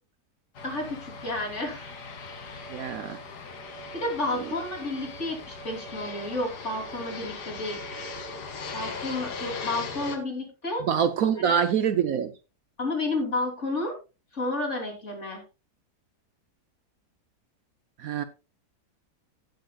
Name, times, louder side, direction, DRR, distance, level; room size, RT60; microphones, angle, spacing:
Fixed-wing aircraft airplane, 0.5-10.2, left 4 dB, 75° left, 2.0 m, -39 dB
voice 1, 0.6-1.9 3.9-7.8 8.7-10.8 11.4-11.6 12.8-14.0 14.3-15.4, left 2 dB, 45° left, 3.5 m, -31 dB
voice 2, 2.7-3.2 10.9-12.3 18.0-18.2, right 8 dB, 65° right, 1.1 m, -25 dB
16.0 x 7.8 x 2.3 m
omnidirectional pair, 1.8 m